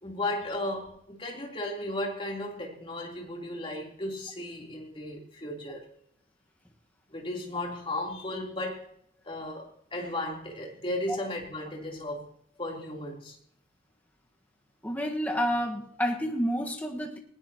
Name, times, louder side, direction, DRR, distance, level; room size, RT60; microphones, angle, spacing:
voice 1, 0.0-5.9 7.1-8.9 9.2-12.3 12.6-13.4, left 1 dB, 30° left, -1 dB, 3.6 m, -35 dB
voice 2, 14.8-17.2, equal, 10° left, 0 dB, 1.5 m, -29 dB
19.5 x 18.5 x 3.0 m, 0.68 s
head